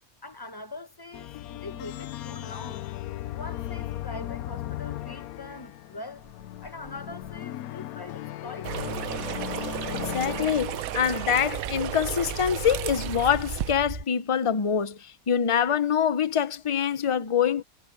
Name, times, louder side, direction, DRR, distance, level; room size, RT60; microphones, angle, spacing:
voice 1, 0.2-2.8 3.3-6.3 6.6-8.8, left 2 dB, 20° left, 1.0 m, -42 dB
sound 1, 1.1-11.2, left 14 dB, 85° left, 1.1 m, -37 dB
sound 2, 6.2-7.4 8.0-8.2 8.5-14.0, right 2 dB, 40° right, 3.5 m, -41 dB
sound 3, 8.6-13.7, right 12 dB, 75° right, 1.1 m, -33 dB
voice 2, 9.9-17.6, left 8 dB, 35° left, 0.5 m, -25 dB
omnidirectional pair, 1.5 m